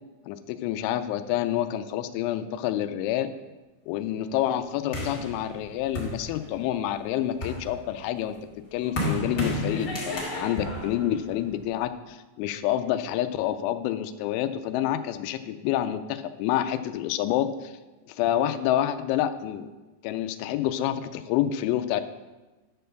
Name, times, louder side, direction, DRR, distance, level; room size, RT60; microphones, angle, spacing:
voice 1, 0.3-3.3 3.9-8.4 8.7-17.7 18.1-19.7 20.0-22.0, left 12 dB, 85° left, 11 dB, 3.0 m, -28 dB
sound 1, 4.9-6.7 7.2-11.8, left 1 dB, 35° left, 1.6 m, -33 dB
11.5 x 4.5 x 6.5 m, 1.2 s
omnidirectional pair, 5.4 m